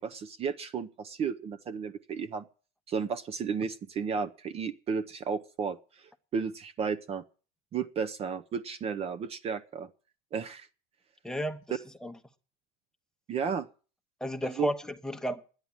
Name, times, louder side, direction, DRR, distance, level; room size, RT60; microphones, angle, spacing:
voice 1, 0.0-2.4 2.9-5.8 6.3-7.2 7.7-9.9 10.3-10.7 13.3-13.7 14.4-14.7, right 6 dB, 35° right, 0.7 m, -33 dB
voice 2, 11.2-11.6 12.0-12.1 14.2-15.5, equal, 5° left, 1.0 m, -32 dB
11.0 x 9.7 x 8.8 m
cardioid pair, 140°, 19 cm